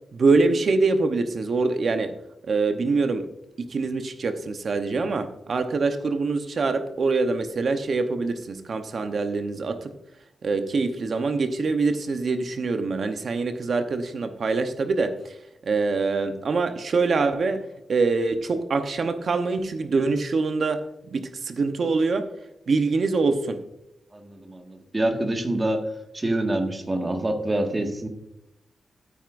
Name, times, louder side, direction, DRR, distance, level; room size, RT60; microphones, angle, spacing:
voice 1, 0.1-2.1 2.4-3.3 3.6-9.9 10.4-15.4 15.6-20.8 21.1-22.3 22.7-23.6, right 3 dB, 65° right, 8 dB, 0.9 m, -24 dB
voice 2, 24.1-25.9 26.1-28.1, right 1 dB, 25° right, 4 dB, 1.7 m, -26 dB
12.5 x 9.4 x 2.6 m, 0.84 s
cardioid pair, 85°, 0 cm